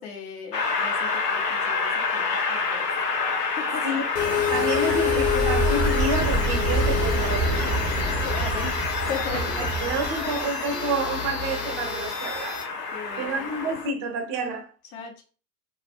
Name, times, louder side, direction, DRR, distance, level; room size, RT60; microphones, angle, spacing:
voice 1, 0.0-2.9 3.4-4.0 4.8-5.0 8.0-9.4 12.9-13.5 14.9-15.2, left 6 dB, 65° left, 0.9 m, -38 dB
Train, 0.5-13.9, left 4 dB, 90° left, 0.6 m, -29 dB
sound 1, 4.1-12.6, left 6 dB, 50° left, 1.3 m, -29 dB
voice 2, 4.5-7.9 9.3-12.6 13.2-14.7, right 3 dB, 35° right, 0.6 m, -29 dB
sound 2, 4.9-10.4, right 2 dB, 10° left, 0.6 m, -27 dB
2.4 x 2.1 x 2.5 m
figure-of-eight pair, 90°, 47 cm